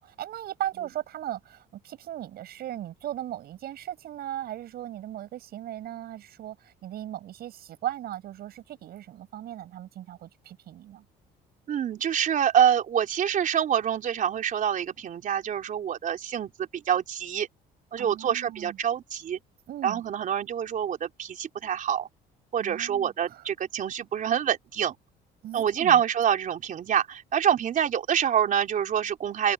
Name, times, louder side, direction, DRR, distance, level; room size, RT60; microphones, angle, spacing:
voice 1, 0.0-11.0 18.0-18.8 19.7-20.0 22.6-23.4 25.4-26.0, right 12 dB, 65° right, 8.0 m, -37 dB
voice 2, 11.7-17.5 17.9-19.4 19.8-22.1 22.5-25.0 25.5-29.5, right 9 dB, 50° right, 3.9 m, -26 dB
cardioid pair, 110°, 17 cm